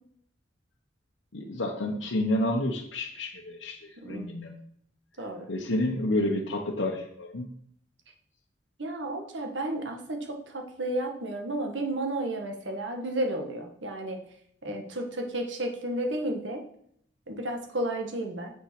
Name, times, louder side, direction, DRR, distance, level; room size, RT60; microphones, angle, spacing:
voice 1, 1.3-4.5 5.2-7.5, left 1 dB, 85° left, -2 dB, 1.0 m, -30 dB
voice 2, 8.8-14.2 14.6-16.6 17.3-18.5, right 1 dB, 80° right, 3 dB, 1.5 m, -32 dB
7.6 x 5.8 x 5.9 m, 0.68 s
head